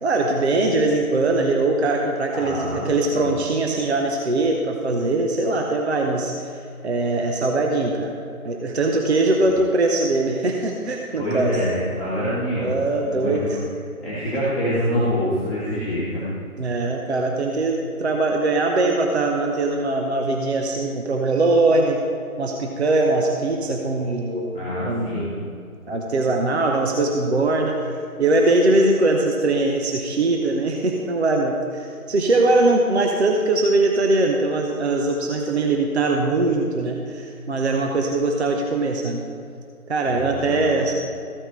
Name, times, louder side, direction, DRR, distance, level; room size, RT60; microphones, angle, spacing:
voice 1, 0.0-6.5 6.8-8.1 8.4-11.6 12.6-13.6 16.6-22.0 22.4-25.5 25.9-27.8 28.2-39.2 39.9-40.9, right 2 dB, 45° right, 2 dB, 0.9 m, -21 dB
voice 2, 2.3-3.3 11.2-12.7 13.0-13.5 14.0-16.2 24.5-25.4 40.0-40.7, equal, ahead, -19 dB, 1.4 m, -26 dB
14.5 x 8.8 x 3.2 m, 2.3 s
figure-of-eight pair, 155°, 44 cm